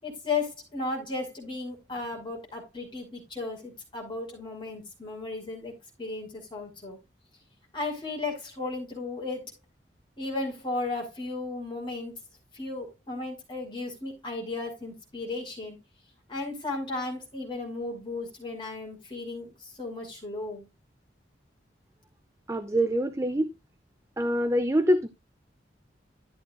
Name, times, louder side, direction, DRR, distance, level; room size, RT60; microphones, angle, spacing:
voice 1, 0.0-5.7 6.0-7.0 7.7-9.5 10.2-12.2 12.5-15.8 16.3-20.7, left 3 dB, 25° left, 6.3 m, -35 dB
voice 2, 22.5-23.5 24.2-25.1, equal, 15° right, 0.7 m, -25 dB
13.5 x 8.1 x 2.6 m
head